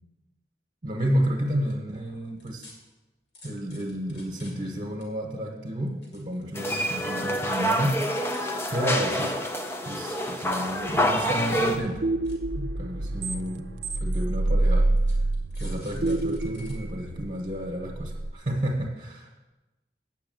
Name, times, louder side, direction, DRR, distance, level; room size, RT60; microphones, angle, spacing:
voice 1, 0.8-2.7 3.4-8.4 8.7-9.3 9.8-12.0 12.6-13.6 14.0-14.9 15.6-19.5, equal, 40° right, -1 dB, 1.1 m, -31 dB
sound 1, 1.5-1.7 2.4-2.7 3.3-4.7 5.0-5.1 5.8-6.8 7.2-7.7 8.2-8.4 8.7-9.3 10.2-11.0 11.3-11.4 11.8-11.9 12.3-12.4 13.2-13.3 14.0-14.1 15.0-16.7 17.2-17.3, left 2 dB, 65° left, 2.4 m, -51 dB
sound 2, 6.6-11.8, equal, 15° left, 0.5 m, -27 dB
sound 3, 10.5-18.3, right 2 dB, 70° right, 0.6 m, -28 dB
8.1 x 6.1 x 7.7 m, 1.1 s
head